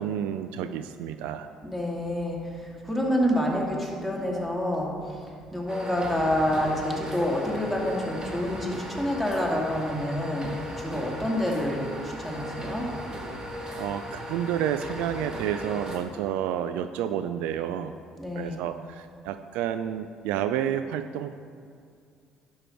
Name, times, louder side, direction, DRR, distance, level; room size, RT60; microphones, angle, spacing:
voice 1, 0.0-1.5 13.7-17.9 18.4-21.3, right 10 dB, 70° right, 10 dB, 0.3 m, -30 dB
voice 2, 1.6-5.3 5.5-12.9 18.2-18.6, equal, ahead, -2 dB, 2.4 m, -28 dB
sound 1, 5.7-16.0, equal, 25° right, 1.7 m, -37 dB
11.0 x 6.5 x 4.4 m, 2.3 s
hypercardioid pair, 55°, 3 cm